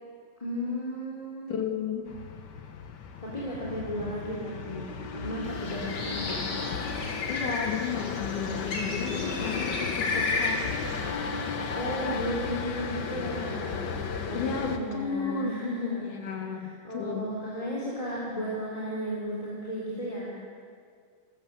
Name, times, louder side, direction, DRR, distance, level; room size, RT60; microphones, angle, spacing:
voice 1, 0.4-1.5 3.2-6.4 11.7-16.3 16.5-20.3, equal, 10° left, -6 dB, 3.4 m, -35 dB
voice 2, 1.5-2.0 7.3-10.6 14.3-15.5 16.2-16.6 16.9-17.4, left 6 dB, 65° left, 3 dB, 3.4 m, -33 dB
sound 1, 2.1-14.8, left 5 dB, 80° left, 0.9 m, -35 dB
Bird, 5.5-11.0, left 3 dB, 35° left, 3.5 m, -33 dB
26.5 x 14.5 x 7.7 m, 2.1 s
omnidirectional pair, 4.0 m